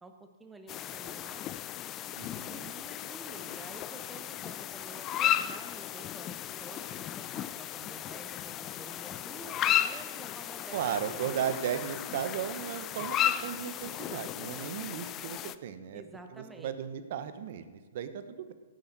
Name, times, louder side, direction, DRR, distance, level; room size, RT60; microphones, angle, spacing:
voice 1, 0.0-1.5 2.4-11.3 15.9-16.7, right 2 dB, 5° right, 5 dB, 1.2 m, -50 dB
sound 1, 0.7-15.6, left 11 dB, 25° left, 0.4 m, -35 dB
voice 2, 2.1-2.7 10.7-16.0 16.3-18.5, right 9 dB, 55° right, 11 dB, 1.0 m, -36 dB
15.5 x 9.4 x 4.1 m, 1.4 s
hypercardioid pair, 120°, 0 cm